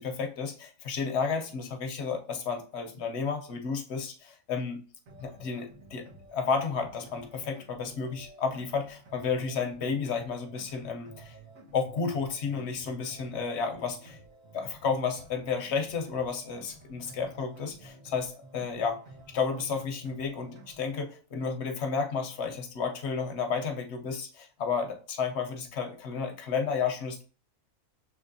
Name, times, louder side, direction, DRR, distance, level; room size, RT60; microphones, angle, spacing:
voice 1, 0.0-4.8 5.2-11.4 11.7-14.2 14.5-19.0 19.3-27.2, left 5 dB, 60° left, 4 dB, 0.8 m, -32 dB
sound 1, 5.1-21.1, right 1 dB, 65° right, 1.5 m, -52 dB
6.5 x 3.1 x 2.6 m, 0.38 s
omnidirectional pair, 1.6 m